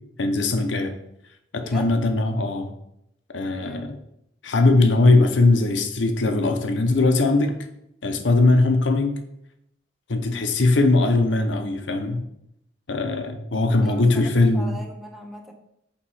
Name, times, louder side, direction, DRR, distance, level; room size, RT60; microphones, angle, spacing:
voice 1, 0.2-0.9 1.5-2.7 3.3-4.0 4.4-7.6 8.0-9.2 10.1-12.3 12.9-14.8, left 2 dB, 75° left, 6 dB, 0.8 m, -20 dB
voice 2, 1.6-1.9 3.6-3.9 10.2-10.4 13.8-15.5, left 1 dB, ahead, 1 dB, 0.8 m, -39 dB
8.3 x 3.0 x 4.8 m, 0.78 s
head